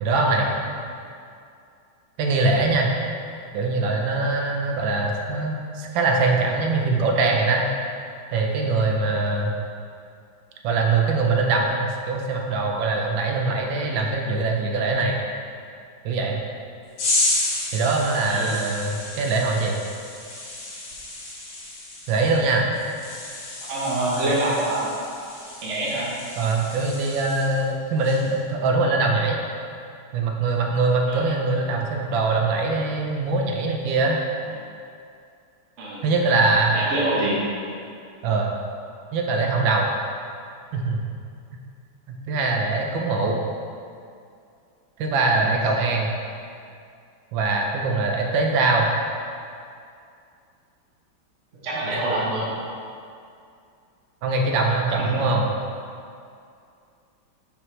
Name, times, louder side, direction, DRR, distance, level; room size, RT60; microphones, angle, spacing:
voice 1, 0.0-0.5 2.2-2.9 3.5-7.7 8.3-9.5 10.6-15.2 16.0-16.4 17.7-19.8 22.1-22.6 26.4-29.4 30.1-34.2 36.0-36.7 38.2-38.5 39.1-39.9 40.7-41.0 42.3-43.4 45.0-46.1 47.3-48.9 54.2-55.5, right 3 dB, 75° right, 1 dB, 1.3 m, -22 dB
sound 1, 17.0-27.7 28.0-28.4, left 2 dB, 80° left, 2.0 m, -31 dB
voice 2, 23.7-24.9 25.6-26.1 31.1-31.2 35.8-36.0 36.7-37.4 45.4-45.6 51.6-52.5 55.1-55.2, right 1 dB, 50° right, -6 dB, 0.9 m, -25 dB
5.9 x 5.1 x 3.2 m, 2.4 s
omnidirectional pair, 2.2 m